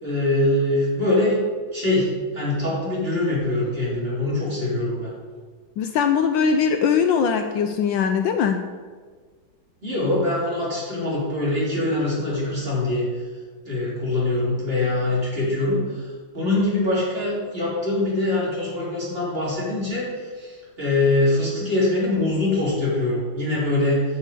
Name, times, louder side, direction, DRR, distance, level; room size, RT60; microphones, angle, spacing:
voice 1, 0.0-1.4 1.7-2.1 2.3-5.1 9.8-13.2 13.6-24.0, left 2 dB, 25° right, -7 dB, 3.8 m, -23 dB
voice 2, 5.8-8.7, left 6 dB, 75° left, 7 dB, 1.2 m, -21 dB
9.4 x 6.2 x 6.8 m, 1.5 s
omnidirectional pair, 2.3 m